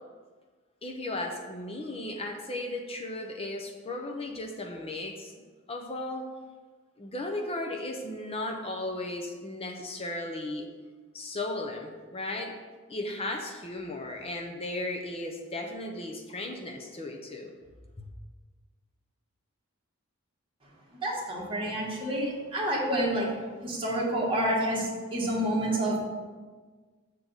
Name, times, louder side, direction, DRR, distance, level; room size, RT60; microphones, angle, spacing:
voice 1, 0.8-5.3 5.7-6.3 7.0-10.7 11.1-12.5 12.9-17.5 18.0-18.1, left 2 dB, 30° left, 3 dB, 0.6 m, -35 dB
voice 2, 21.0-23.3 23.6-26.0, right 1 dB, 25° right, -5 dB, 1.8 m, -28 dB
6.6 x 4.0 x 6.0 m, 1.4 s
head